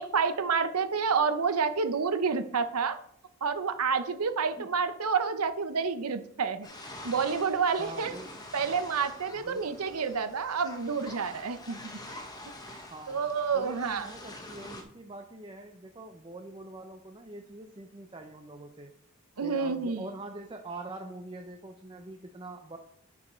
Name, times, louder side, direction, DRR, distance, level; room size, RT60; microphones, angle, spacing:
voice 1, 0.0-3.0 3.4-6.7 7.0-8.1 8.5-11.8 13.1-14.1 19.4-20.0, right 5 dB, 90° right, 10 dB, 0.8 m, -29 dB
sound 1, 6.6-14.8, left 1 dB, 15° left, 1.0 m, -46 dB
voice 2, 7.8-8.3 9.4-9.8 12.9-13.3 13.5-18.9 19.4-22.8, right 2 dB, 20° right, 5 dB, 0.5 m, -44 dB
10.5 x 5.0 x 4.3 m, 0.66 s
head